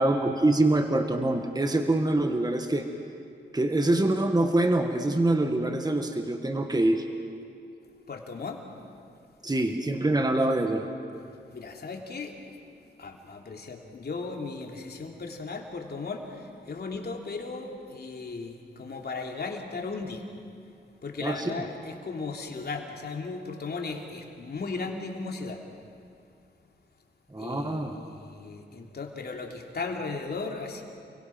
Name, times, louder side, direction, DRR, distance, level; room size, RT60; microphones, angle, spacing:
voice 1, 0.0-2.9 3.5-7.0 9.4-10.9 21.2-21.4 27.3-28.0, right 2 dB, 20° right, 5 dB, 1.8 m, -25 dB
voice 2, 8.1-8.6 11.2-12.6 12.9-20.3 21.0-25.6 27.4-30.8, left 4 dB, 55° left, 2 dB, 3.2 m, -36 dB
29.5 x 22.5 x 6.1 m, 2.4 s
cardioid pair, 65°, 19 cm